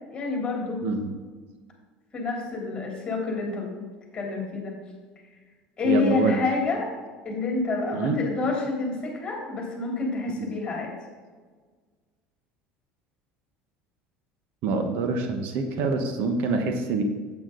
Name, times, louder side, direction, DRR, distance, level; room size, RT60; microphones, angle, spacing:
voice 1, 0.1-0.8 2.1-3.8 4.1-4.7 5.8-6.9 7.2-10.9, left 3 dB, 25° left, 0 dB, 3.0 m, -28 dB
voice 2, 0.8-1.1 5.8-6.4 7.9-8.2 10.4-10.5 14.6-17.0, right 4 dB, 60° right, 6 dB, 1.1 m, -26 dB
9.2 x 8.1 x 3.8 m, 1.5 s
supercardioid pair, 125°, 4 cm